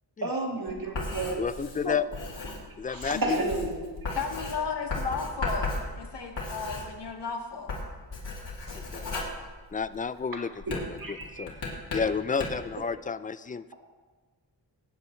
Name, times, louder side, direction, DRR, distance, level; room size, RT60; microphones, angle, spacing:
voice 1, 0.2-1.4 2.9-3.9 10.7-11.4, right 2 dB, 50° right, 0 dB, 2.2 m, -31 dB
Writing, 0.7-7.3 7.6-10.1 10.6-12.7, left 2 dB, 90° left, 2.7 m, -36 dB
voice 2, 1.4-2.1 2.8-3.4 8.7-9.1 9.7-11.6 11.9-13.7, left 6 dB, 20° left, 14 dB, 0.3 m, -31 dB
voice 3, 4.1-7.8, left 5 dB, 65° left, 1 dB, 1.7 m, -34 dB
19.5 x 9.3 x 3.2 m, 1.3 s
wide cardioid pair, 100°, 44 cm